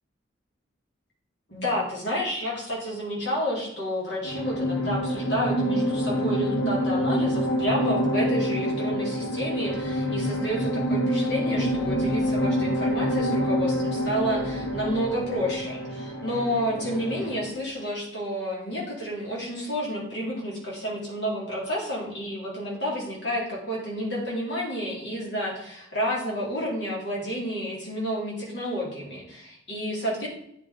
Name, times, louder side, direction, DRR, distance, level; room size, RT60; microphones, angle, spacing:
voice 1, 1.5-30.3, equal, 65° left, -4 dB, 3.6 m, -30 dB
sound 1, 4.2-17.6, equal, 80° left, 1.9 m, -27 dB
9.6 x 5.7 x 5.1 m, 0.72 s
head